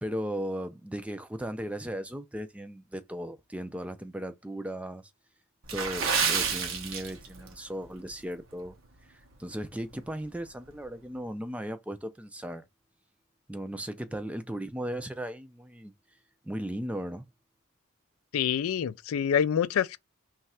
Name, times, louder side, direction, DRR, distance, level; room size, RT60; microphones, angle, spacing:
voice 1, 0.0-5.0 5.7-8.7 9.0-12.7 13.5-15.9 16.4-17.3, equal, 5° right, 0.3 m, -36 dB
Water / Splash splatter, 5.6-7.5 7.8-8.1 8.7-8.9 9.3-9.4, right 6 dB, 75° right, 0.8 m, -29 dB
voice 2, 18.3-20.0, left 8 dB, 90° left, 0.3 m, -26 dB
3.2 x 2.4 x 4.1 m
head